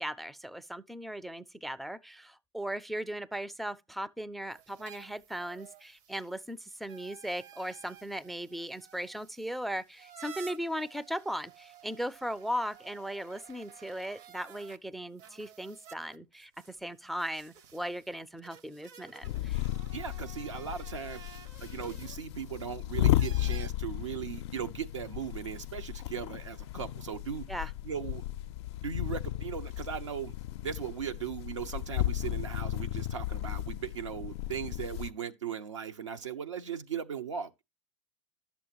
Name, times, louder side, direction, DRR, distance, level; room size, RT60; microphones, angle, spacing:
voice 1, 0.0-19.6 27.5-27.7, equal, ahead, 0.4 m, -38 dB
sound 1, 4.5-14.8 15.2-23.7, right 8 dB, 50° right, 0.8 m, -53 dB
sound 2, 19.2-35.1, left 14 dB, 65° left, 0.4 m, -34 dB
voice 2, 19.9-21.2 21.6-28.2 28.8-30.3 30.6-37.6, right 8 dB, 85° right, 0.8 m, -38 dB
11.0 x 7.1 x 2.9 m
hypercardioid pair, 90°, 15 cm